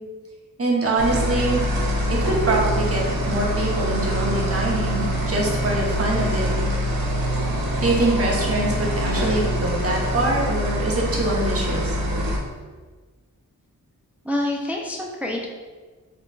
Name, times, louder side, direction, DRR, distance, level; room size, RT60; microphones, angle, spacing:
voice 1, 0.6-1.6 2.1-6.5 7.8-11.9, right 2 dB, 45° right, -2 dB, 0.7 m, -24 dB
sound 1, 1.0-12.4, equal, 85° right, 0.6 m, -24 dB
voice 2, 14.2-15.5, left 1 dB, 5° right, 0 dB, 0.3 m, -26 dB
3.7 x 2.2 x 2.2 m, 1.4 s
cardioid pair, 55°, 35 cm